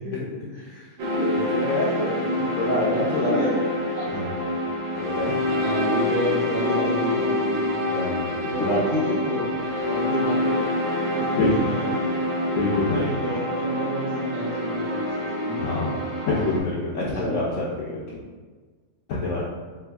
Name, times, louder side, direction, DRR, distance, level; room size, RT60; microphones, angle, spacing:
voice 1, 0.1-0.9 1.2-3.4 4.1-4.3 4.9-5.3 7.9-8.8 11.2-11.5 12.5-13.1 15.6-16.0 16.3-18.2 19.1-19.5, left 2 dB, 70° left, -5 dB, 0.7 m, -27 dB
voice 2, 1.0-1.6 2.9-3.7 3.9-4.1 5.5-7.8 8.5-10.7 11.0-12.1 12.9-15.8 17.2-17.4, equal, 70° right, -6 dB, 0.6 m, -30 dB
sound 1, 1.0-16.6, left 1 dB, 85° right, 1.3 m, -26 dB
3.5 x 3.4 x 2.3 m, 1.4 s
omnidirectional pair, 1.7 m